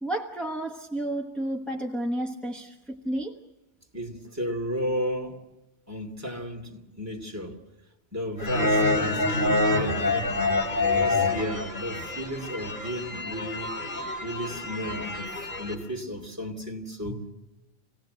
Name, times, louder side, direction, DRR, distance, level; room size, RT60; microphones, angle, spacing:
voice 1, 0.0-3.4 11.1-11.5, right 1 dB, ahead, 1.1 m, -32 dB
voice 2, 3.9-5.4 5.9-7.6 8.1-10.0 10.9-13.7 14.2-17.3, equal, 15° right, 2.6 m, -33 dB
sound 1, 8.4-15.7, left 2 dB, 50° left, 3.8 m, -27 dB
26.5 x 18.0 x 7.8 m
omnidirectional pair, 1.1 m